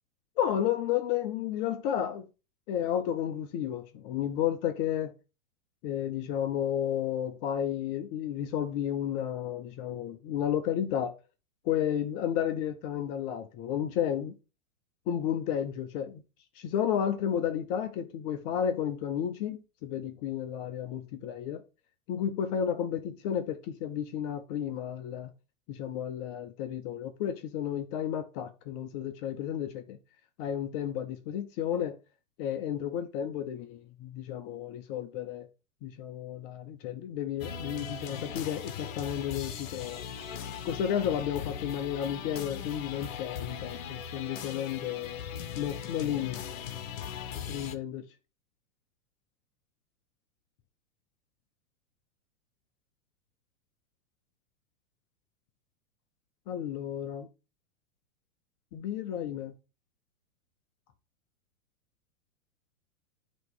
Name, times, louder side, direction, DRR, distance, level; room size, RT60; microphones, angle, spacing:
voice 1, 0.4-2.2 2.7-5.1 5.8-11.1 11.6-14.3 15.1-16.2 16.5-21.6 22.1-25.3 25.7-30.0 30.4-32.0 32.4-35.5 35.8-40.0 40.6-45.2 45.5-46.4 47.5-48.0 56.5-57.3 58.7-59.5, left 9 dB, 40° left, 0.8 m, -32 dB
sound 1, 37.4-47.7, left 8 dB, 65° left, 1.0 m, -39 dB
9.0 x 3.1 x 5.7 m
hypercardioid pair, 105°, 43 cm